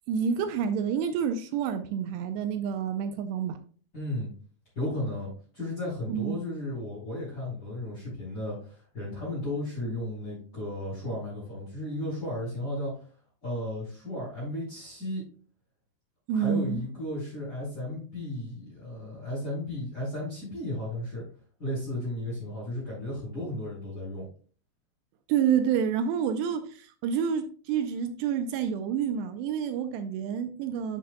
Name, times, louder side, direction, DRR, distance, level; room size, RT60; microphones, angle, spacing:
voice 1, 0.1-3.6 6.1-6.4 16.3-16.8 25.3-31.0, right 7 dB, 80° right, 8 dB, 2.6 m, -28 dB
voice 2, 3.9-4.3 4.8-13.0 13.4-15.2 16.3-21.2 21.6-24.2, left 1 dB, 25° left, -7 dB, 3.6 m, -34 dB
10.0 x 6.4 x 2.2 m, 0.42 s
omnidirectional pair, 5.1 m